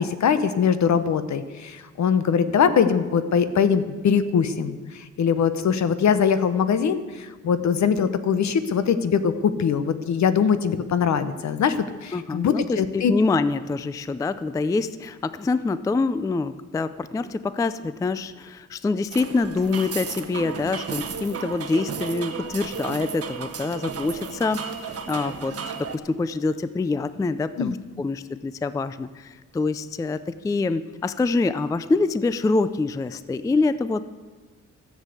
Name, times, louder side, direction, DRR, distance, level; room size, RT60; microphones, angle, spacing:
voice 1, 0.0-13.1 27.6-27.7, left 7 dB, 65° left, 12 dB, 0.9 m, -22 dB
voice 2, 12.1-34.0, left 3 dB, 10° left, 14 dB, 0.3 m, -25 dB
sound 1, 19.1-26.0, right 6 dB, 50° right, 1.2 m, -34 dB
14.0 x 7.4 x 8.2 m, 1.4 s
wide cardioid pair, 150°, 31 cm